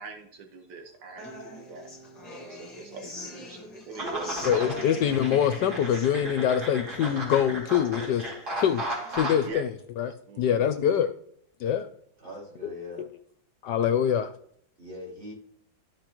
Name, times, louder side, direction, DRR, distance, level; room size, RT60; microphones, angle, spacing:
voice 1, 0.0-1.9 2.3-4.7 9.5-9.6 10.3-10.7, right 4 dB, 75° right, 4 dB, 1.7 m, -42 dB
Human voice / Acoustic guitar, 1.2-9.2, left 1 dB, 25° left, 1.1 m, -43 dB
sound 1, 4.0-9.5, right 1 dB, 55° right, 3.1 m, -35 dB
voice 2, 4.4-8.3 8.6-9.7 10.0-11.1 11.6-11.9 13.0-13.1 13.6-14.3, left 9 dB, 70° left, 10 dB, 1.1 m, -24 dB
voice 3, 12.2-13.1 14.8-15.3, left 1 dB, 25° right, -5 dB, 4.1 m, -41 dB
13.5 x 5.2 x 3.0 m, 0.64 s
omnidirectional pair, 2.1 m